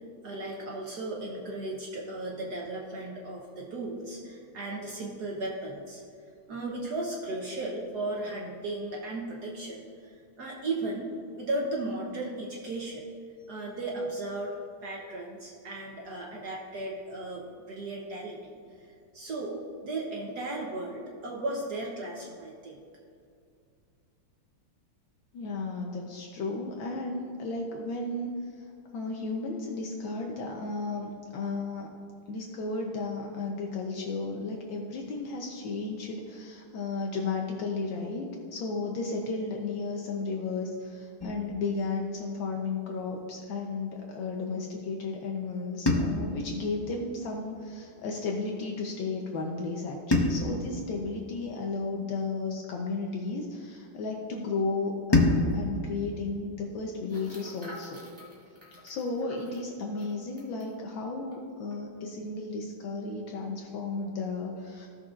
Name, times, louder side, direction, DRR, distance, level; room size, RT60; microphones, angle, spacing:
voice 1, 0.2-6.0 6.5-13.0 13.5-22.7, right 2 dB, 60° right, -2 dB, 1.3 m, -36 dB
voice 2, 25.3-28.3 28.9-31.9 32.3-58.0 58.8-64.9, left 3 dB, 75° left, 0 dB, 1.5 m, -34 dB
sound 1, 41.2-43.4 45.8-48.2 50.1-52.6 55.1-57.7, left 2 dB, 35° left, 0.4 m, -31 dB
sound 2, 55.5-55.6 57.0-60.7 61.3-61.4 61.7-62.0, left 1 dB, 5° right, 1.7 m, -50 dB
15.5 x 6.6 x 2.4 m, 2.3 s
omnidirectional pair, 2.2 m